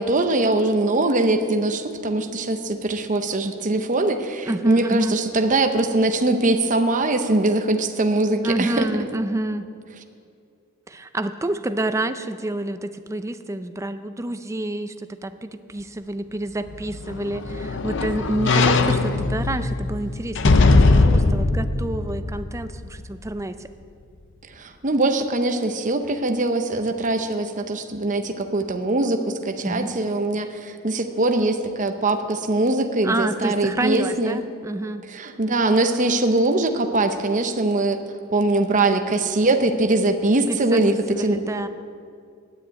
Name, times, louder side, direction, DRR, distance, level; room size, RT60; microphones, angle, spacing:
voice 1, 0.0-8.9 24.5-34.4 35.1-38.0 38.3-41.4, right 2 dB, 35° right, 6 dB, 0.8 m, -22 dB
voice 2, 4.4-5.1 8.4-9.7 10.9-23.6 29.6-29.9 33.0-35.0 40.5-41.7, right 1 dB, 15° right, 10 dB, 0.5 m, -28 dB
sound 1, 16.7-23.1 23.5-23.6, left 3 dB, 60° left, 0.6 m, -20 dB
9.8 x 9.7 x 8.9 m, 2.3 s
head